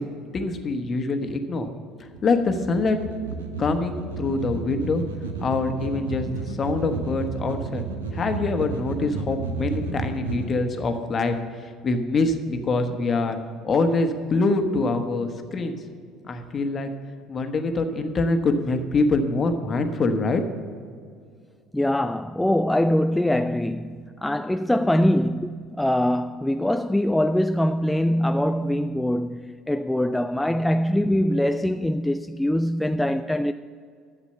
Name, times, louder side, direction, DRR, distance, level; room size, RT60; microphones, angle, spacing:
voice 1, 0.0-1.7 2.0-3.0 3.6-5.0 5.4-7.8 8.1-11.4 11.6-13.4 13.6-15.8 16.2-16.9 17.3-20.4, left 3 dB, 35° left, 1.2 m, -24 dB
sound 1, 2.1-10.5, right 4 dB, 80° right, 0.9 m, -32 dB
voice 2, 21.7-33.5, left 1 dB, 5° left, 0.3 m, -23 dB
11.5 x 7.4 x 6.7 m
figure-of-eight pair, 60°, 0 cm